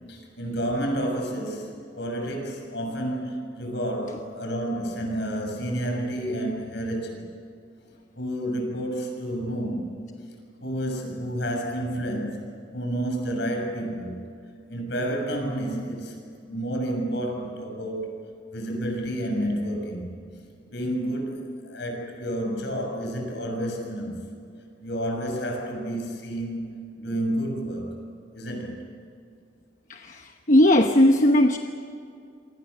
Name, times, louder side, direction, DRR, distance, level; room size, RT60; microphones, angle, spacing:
voice 1, 0.1-7.3 8.2-10.0 10.6-12.4 12.7-14.3 14.7-18.2 18.5-20.1 20.7-24.3 24.8-27.9 28.3-28.8, right 1 dB, 70° left, 2 dB, 6.8 m, -30 dB
voice 2, 29.9-31.6, left 1 dB, 45° left, 5 dB, 1.1 m, -18 dB
28.0 x 25.0 x 6.8 m, 2.4 s
head